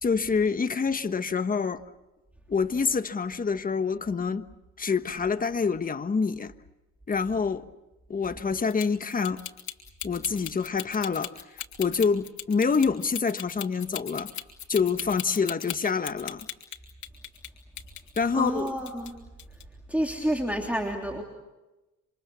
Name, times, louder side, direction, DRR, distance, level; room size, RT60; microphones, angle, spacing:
voice 1, 0.0-1.8 2.5-4.4 4.8-6.5 7.1-7.7 8.1-9.4 10.0-11.4 11.8-14.3 14.7-16.5 18.2-18.7, left 5 dB, 30° left, 1.3 m, -26 dB
sound 1, 8.7-17.5 17.8-19.1 19.4-19.6, left 11 dB, 75° left, 3.0 m, -38 dB
voice 2, 18.3-19.2 19.9-21.2, equal, 5° right, 3.3 m, -29 dB
28.5 x 26.5 x 7.0 m
cardioid pair, 90°, 30 cm